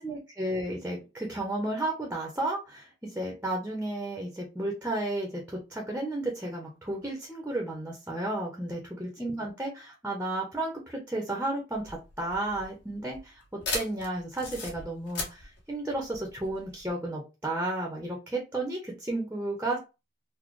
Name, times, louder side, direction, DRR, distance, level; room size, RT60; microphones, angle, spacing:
voice 1, 0.0-19.8, right 2 dB, 10° right, 0 dB, 0.7 m, -33 dB
sound 1, 11.7-16.9, left 3 dB, 60° left, 1.5 m, -37 dB
4.0 x 2.1 x 3.1 m, 0.28 s
head